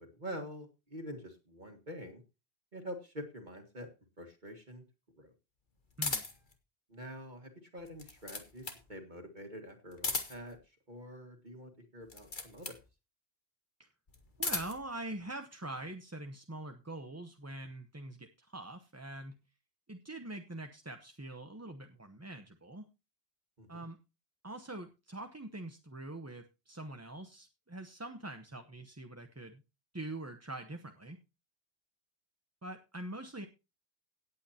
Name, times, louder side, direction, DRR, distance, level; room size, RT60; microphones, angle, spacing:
voice 1, 0.0-2.2 2.7-3.9 4.2-4.8 5.2-5.3 6.9-12.8 23.6-23.9, equal, 45° right, 5 dB, 1.9 m, -46 dB
sound 1, 6.0-6.5 7.8-8.9 9.9-10.6 12.0-12.8 14.1-14.9, left 3 dB, 45° left, 1.8 m, -37 dB
voice 2, 14.4-19.4 19.9-22.9 23.7-24.0 24.4-29.6 29.9-31.2 32.6-33.5, right 1 dB, 15° right, 6 dB, 0.8 m, -44 dB
17.5 x 8.6 x 2.8 m, 0.27 s
omnidirectional pair, 1.1 m